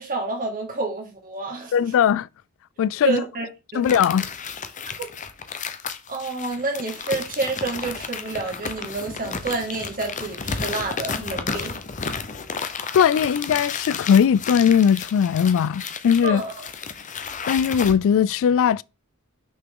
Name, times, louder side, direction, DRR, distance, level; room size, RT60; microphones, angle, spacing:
voice 1, 0.0-1.7 3.0-3.5 3.7-3.9 5.0-5.1 6.1-11.8 16.2-16.7, right 3 dB, 40° right, 2.1 m, -29 dB
voice 2, 1.7-2.3 2.8-3.2 3.7-4.3 12.9-16.4 17.5-18.8, left 8 dB, 60° left, 0.3 m, -19 dB
sound 1, 3.8-17.9, left 5 dB, 35° left, 0.7 m, -32 dB
6.0 x 6.0 x 3.7 m
head